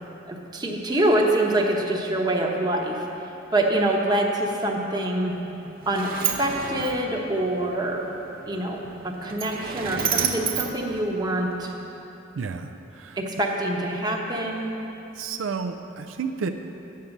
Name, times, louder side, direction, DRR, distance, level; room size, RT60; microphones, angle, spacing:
voice 1, 0.2-3.0 3.5-5.4 5.9-8.1 8.5-11.7 13.2-14.7, right 1 dB, 20° right, 0 dB, 0.9 m, -25 dB
Sliding door, 5.3-11.7, right 7 dB, 50° right, 0.7 m, -32 dB
voice 2, 12.3-13.2 15.2-16.5, right 5 dB, 75° right, 5 dB, 0.4 m, -31 dB
9.1 x 6.6 x 7.2 m, 3.0 s
head